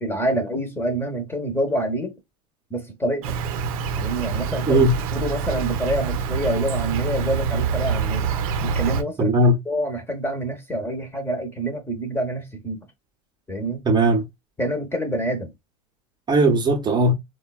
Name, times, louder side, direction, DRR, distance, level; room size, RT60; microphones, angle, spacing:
voice 1, 0.0-2.1 2.7-3.4 4.0-8.3 8.6-9.3 9.7-12.8 13.5-13.8 14.6-15.5, right 1 dB, 10° left, 0.7 m, -27 dB
Insect, 3.2-9.0, right 6 dB, 70° right, 0.6 m, -26 dB
voice 2, 4.7-5.0 9.2-9.6 13.9-14.3 16.3-17.1, right 1 dB, 20° right, 0.7 m, -18 dB
3.1 x 2.2 x 2.3 m
hypercardioid pair, 100°, 19 cm